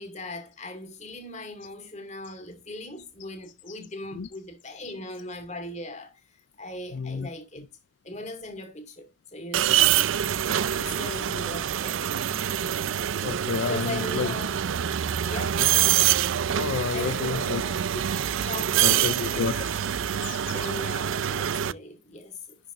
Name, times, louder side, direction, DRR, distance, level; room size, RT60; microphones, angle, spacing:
voice 1, 0.0-6.2 6.6-7.7 8.0-10.2 10.7-12.4 13.5-14.5 15.2-15.6 16.9-17.9 18.3-19.5 20.5-22.6, left 2 dB, 35° left, 2.4 m, -39 dB
voice 2, 6.9-7.3 13.2-14.3 15.6-15.7 16.5-17.6 18.4-19.8 20.1-20.7, left 5 dB, 60° left, 0.4 m, -31 dB
sound 1, 9.5-21.7, right 10 dB, 70° right, 0.4 m, -25 dB
11.0 x 6.9 x 2.6 m
head